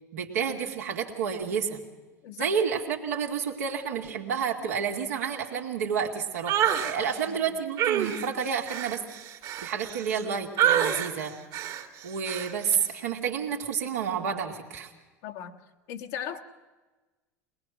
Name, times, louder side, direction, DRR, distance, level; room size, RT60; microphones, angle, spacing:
voice 1, 0.1-1.8 2.4-9.0 9.6-11.4 12.0-14.9, right 7 dB, 80° right, 1 dB, 2.2 m, -30 dB
voice 2, 2.2-2.5 7.0-7.4 15.2-15.6 15.9-16.4, left 9 dB, 65° left, 3 dB, 1.3 m, -38 dB
sound 1, 6.5-6.9 7.8-10.2 10.6-11.1 11.5-11.8 12.3-12.5, right 10 dB, 55° right, 2.3 m, -27 dB
22.0 x 19.5 x 6.3 m, 1.2 s
hypercardioid pair, 80°, 8 cm